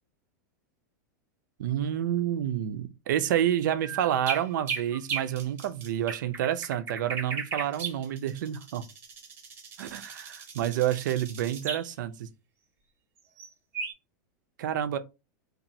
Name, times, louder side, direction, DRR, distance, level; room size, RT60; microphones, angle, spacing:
voice 1, 1.6-8.8 9.8-12.3 14.6-15.0, right 11 dB, 80° right, 0.4 m, -29 dB
sound 1, 3.8-11.9 13.4-13.5 13.7-13.9, right 5 dB, 25° right, 0.7 m, -36 dB
2.9 x 2.4 x 2.6 m
supercardioid pair, 150°, 10 cm